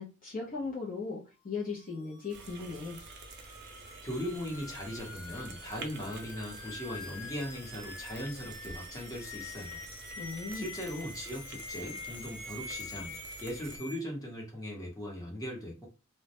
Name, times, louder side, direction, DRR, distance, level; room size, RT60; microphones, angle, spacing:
voice 1, 0.0-3.0 10.2-10.7, left 4 dB, 40° left, -3 dB, 0.5 m, -38 dB
sound 1, 1.7-14.0, left 4 dB, 75° left, 0.7 m, -46 dB
sound 2, 2.3-13.8, right 4 dB, 55° right, 0.4 m, -49 dB
voice 2, 4.0-9.8 10.5-15.9, equal, 15° left, -2 dB, 0.8 m, -39 dB
2.2 x 2.0 x 2.8 m, 0.30 s
head